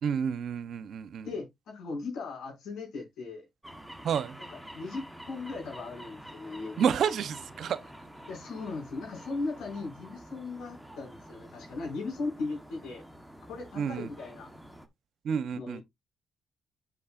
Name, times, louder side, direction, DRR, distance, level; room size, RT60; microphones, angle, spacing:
voice 1, 0.0-1.3 4.0-4.4 6.8-7.8 13.8-14.1 15.2-15.8, right 7 dB, 65° right, 0.8 m, -29 dB
voice 2, 1.2-3.4 4.7-6.8 8.3-13.0 13.5-14.5 15.5-15.8, left 3 dB, 80° left, 5.8 m, -37 dB
sound 1, 3.6-14.9, equal, ahead, 1.2 m, -48 dB
8.5 x 7.0 x 2.5 m
cardioid pair, 90°, 0 cm